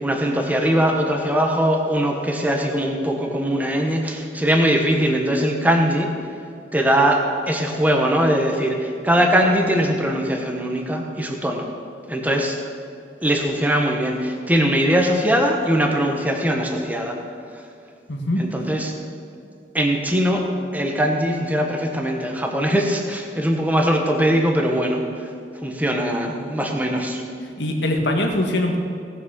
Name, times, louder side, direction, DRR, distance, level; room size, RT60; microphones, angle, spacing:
voice 1, 0.0-6.1 6.7-7.2 7.5-11.7 12.1-12.6 13.2-17.2 18.4-18.9 19.7-25.3 25.6-27.2, equal, 10° right, 2 dB, 1.2 m, -21 dB
voice 2, 18.1-18.4 27.6-28.8, left 1 dB, 80° left, 3 dB, 1.7 m, -22 dB
18.0 x 6.1 x 7.0 m, 2.5 s
head